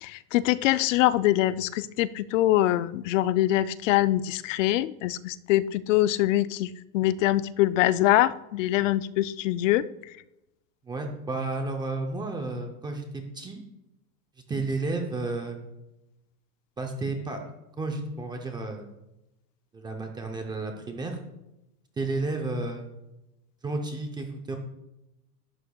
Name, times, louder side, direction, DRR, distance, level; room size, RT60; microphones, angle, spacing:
voice 1, 0.0-9.8, left 15 dB, 55° left, 16 dB, 0.5 m, -24 dB
voice 2, 10.8-13.6 14.5-15.6 16.8-17.5 17.8-18.9 19.7-21.2 22.0-22.8 23.6-24.6, right 3 dB, 10° right, 3 dB, 0.6 m, -32 dB
11.5 x 11.0 x 2.3 m, 0.92 s
supercardioid pair, 150°, 47 cm